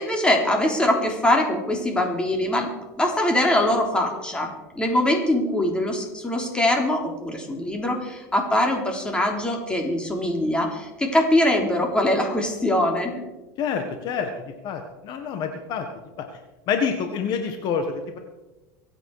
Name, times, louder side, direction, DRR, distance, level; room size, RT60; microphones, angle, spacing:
voice 1, 0.0-2.7 3.0-4.5 4.8-13.1, left 1 dB, 10° left, 2 dB, 3.7 m, -22 dB
voice 2, 13.6-14.3 14.6-15.9 16.7-18.2, left 6 dB, 50° left, 6 dB, 1.7 m, -27 dB
24.5 x 8.8 x 4.9 m, 1.1 s
supercardioid pair, 115°, 9 cm